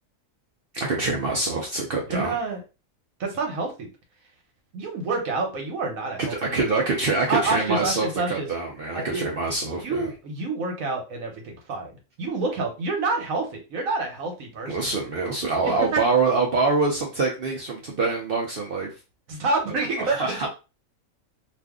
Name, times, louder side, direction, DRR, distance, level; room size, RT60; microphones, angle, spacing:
voice 1, 0.7-2.3 6.3-10.1 14.6-18.9 20.0-20.5, right 3 dB, 55° right, 0 dB, 0.7 m, -25 dB
voice 2, 2.1-2.6 3.2-3.9 4.7-6.7 7.3-8.5 8.9-9.2 9.8-11.9 12.2-14.8 15.6-16.0 19.3-20.5, right 3 dB, 80° right, 3 dB, 1.3 m, -28 dB
2.5 x 2.5 x 3.5 m, 0.29 s
omnidirectional pair, 1.4 m